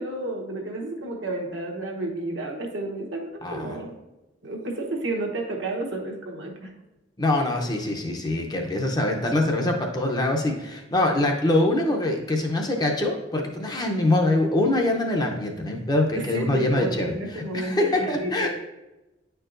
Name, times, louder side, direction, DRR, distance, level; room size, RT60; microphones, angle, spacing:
voice 1, 0.0-3.9 4.4-6.7 8.0-8.1 9.2-9.3 16.3-18.5, right 2 dB, 70° right, 0 dB, 1.0 m, -31 dB
voice 2, 3.4-3.8 7.2-18.5, left 2 dB, 20° left, 2 dB, 0.6 m, -24 dB
9.5 x 4.6 x 2.5 m, 1.0 s
head